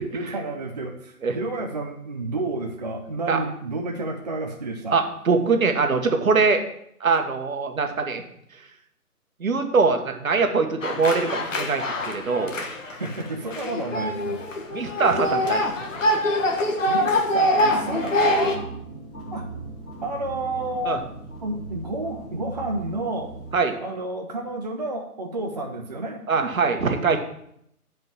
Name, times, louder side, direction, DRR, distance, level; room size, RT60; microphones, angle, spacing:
voice 1, 0.1-5.0 13.0-14.4 15.1-15.2 16.9-18.7 19.3-19.5 20.0-21.0 21.4-23.3 23.8-26.2, right 2 dB, 30° right, 2 dB, 0.6 m, -30 dB
voice 2, 4.9-6.6 7.0-8.2 9.4-12.6 14.7-15.6 20.8-21.0 23.5-23.8 26.3-27.2, right 4 dB, 65° right, 5 dB, 1.5 m, -22 dB
sound 1, 10.8-18.5, left 1 dB, 55° left, 1.6 m, -24 dB
sound 2, 17.7-23.5, right 3 dB, 10° left, 4.0 m, -38 dB
8.2 x 5.2 x 7.4 m, 0.73 s
figure-of-eight pair, 155°, 45 cm